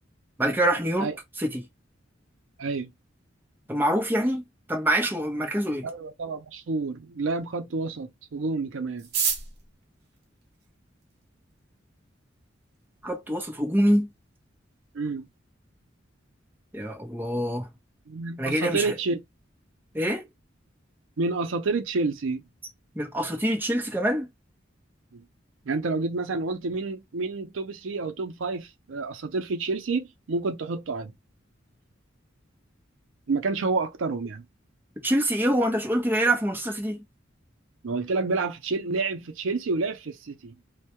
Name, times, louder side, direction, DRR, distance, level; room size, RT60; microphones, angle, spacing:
voice 1, 0.4-1.1 1.4-1.7 3.7-5.9 13.0-14.1 16.7-17.7 18.4-18.9 19.9-20.2 22.9-24.3 35.0-37.0, right 1 dB, 10° right, 0.7 m, -25 dB
voice 2, 2.6-2.9 5.8-9.1 14.9-15.3 18.1-19.2 21.2-22.4 25.1-25.2 25.7-31.1 33.3-34.4 37.8-40.5, right 3 dB, 85° right, 0.5 m, -29 dB
sound 1, 9.0-11.2 12.0-12.1 12.3-12.4 12.7-13.2 13.5-13.6 13.8-14.2 14.5-14.7 15.1-15.4, right 6 dB, 55° right, 0.8 m, -31 dB
2.2 x 2.1 x 2.8 m
head